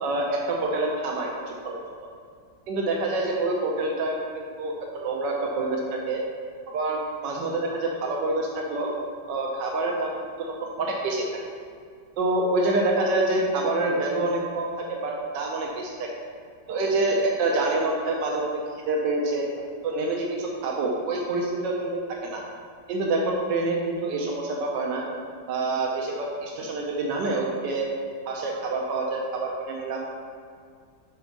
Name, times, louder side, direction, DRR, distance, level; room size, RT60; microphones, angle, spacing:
voice 1, 0.0-1.8 2.7-6.2 6.7-8.9 9.3-10.1 10.5-11.3 12.2-16.1 16.7-18.6 18.9-19.5 19.8-22.4 22.9-25.0 25.5-27.9 28.3-30.1, right 2 dB, 75° right, -1 dB, 1.4 m, -27 dB
5.4 x 4.4 x 5.9 m, 2.1 s
omnidirectional pair, 2.0 m